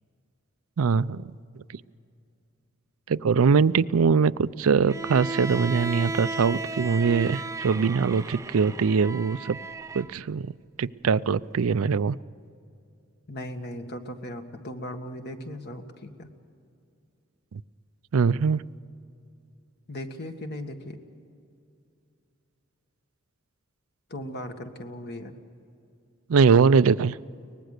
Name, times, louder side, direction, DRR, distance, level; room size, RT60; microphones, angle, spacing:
voice 1, 0.8-1.2 3.1-9.6 9.9-10.5 10.8-12.2 18.1-18.6 26.3-27.2, right 5 dB, 75° right, 16 dB, 0.5 m, -22 dB
Bowed string instrument, 4.9-10.1, right 3 dB, 15° right, 0.5 m, -34 dB
voice 2, 13.3-16.3 19.9-21.0 24.1-25.3, left 1 dB, 50° left, 6 dB, 1.7 m, -37 dB
23.5 x 20.0 x 6.6 m, 2.4 s
head